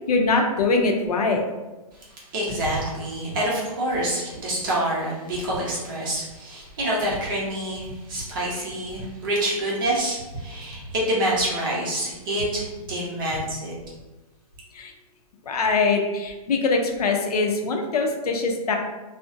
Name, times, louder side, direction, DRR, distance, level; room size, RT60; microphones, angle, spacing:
voice 1, 0.1-1.4 14.7-14.9 15.5-18.8, left 3 dB, 85° left, 2 dB, 0.6 m, -22 dB
voice 2, 2.3-13.7, right 1 dB, 35° right, -5 dB, 0.6 m, -27 dB
2.5 x 2.1 x 2.5 m, 1.1 s
hypercardioid pair, 165°, 19 cm